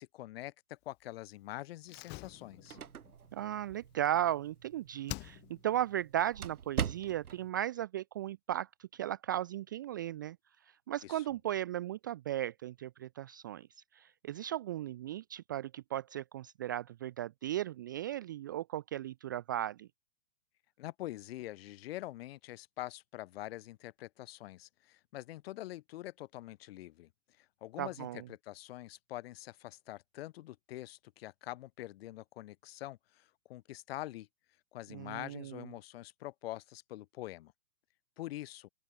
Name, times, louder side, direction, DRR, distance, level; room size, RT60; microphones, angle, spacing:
voice 1, 0.0-2.8 11.0-11.2 20.8-27.1 27.4-34.3 34.7-37.5 38.2-38.7, left 16 dB, 45° left, 2.7 m, -45 dB
Slam, 1.8-4.6 5.1-5.8 6.1-6.2, left 21 dB, 25° left, 2.5 m, -47 dB
sound 1, 2.3-7.5, right 8 dB, 90° right, 1.9 m, -43 dB
voice 2, 3.3-10.4 10.6-19.9 27.8-28.3 34.9-35.7, right 12 dB, 15° right, 0.4 m, -36 dB
open air
hypercardioid pair, 145°, 42 cm